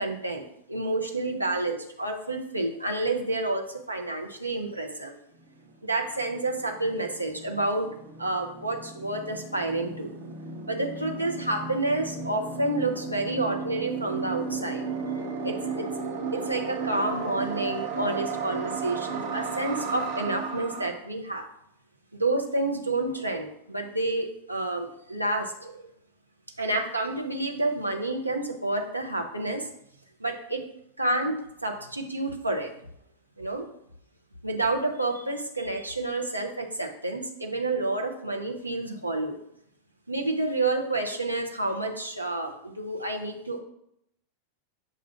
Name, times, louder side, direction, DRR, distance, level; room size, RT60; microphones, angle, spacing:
voice 1, 0.0-5.1 5.8-7.9 8.2-10.1 10.6-14.8 15.1-15.9 16.3-21.5 22.1-25.8 26.6-29.7 30.2-30.6 31.0-32.7 33.4-33.7 34.4-39.4 40.1-43.6, right 2 dB, 85° right, 2 dB, 0.7 m, -29 dB
sound 1, 5.4-5.5 5.7-20.9, right 5 dB, 50° right, 0.9 m, -35 dB
7.0 x 2.5 x 5.6 m, 0.74 s
figure-of-eight pair, 90°, 0 cm